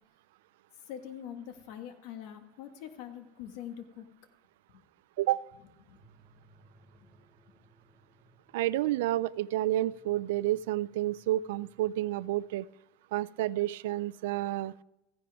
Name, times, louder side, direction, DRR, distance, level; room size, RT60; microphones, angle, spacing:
voice 1, 0.8-4.1 4.7-4.8 5.9-6.0 7.0-7.1, left 9 dB, 75° left, 7 dB, 1.5 m, -44 dB
sound 1, 5.9-12.3, right 2 dB, 5° left, 4.3 m, -64 dB
voice 2, 8.5-12.7 13.1-14.7, right 15 dB, 90° right, 20 dB, 0.3 m, -30 dB
15.0 x 10.0 x 3.5 m, 0.93 s
supercardioid pair, 90°, 0 cm